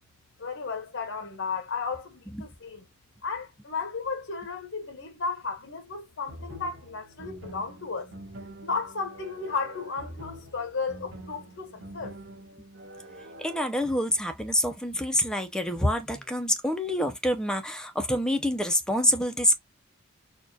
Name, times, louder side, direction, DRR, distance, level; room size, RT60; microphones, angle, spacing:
voice 1, 0.4-2.8 3.2-8.1 8.6-12.2, left 4 dB, 60° left, 1.0 m, -34 dB
sound 1, 6.3-13.7, right 1 dB, 65° right, 1.4 m, -45 dB
voice 2, 13.4-19.5, left 1 dB, 5° left, 0.6 m, -26 dB
4.3 x 2.4 x 2.8 m
head